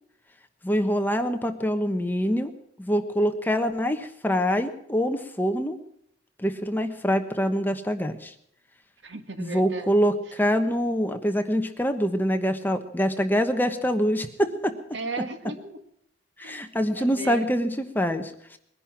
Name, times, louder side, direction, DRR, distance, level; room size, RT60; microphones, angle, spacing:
voice 1, 0.6-2.5 2.8-5.8 6.4-8.3 9.4-14.8 16.4-18.6, equal, 10° left, 7 dB, 1.1 m, -25 dB
voice 2, 9.0-9.9 14.9-15.8 16.4-17.5, right 3 dB, 75° right, 8 dB, 1.8 m, -36 dB
21.5 x 11.0 x 6.0 m, 0.72 s
head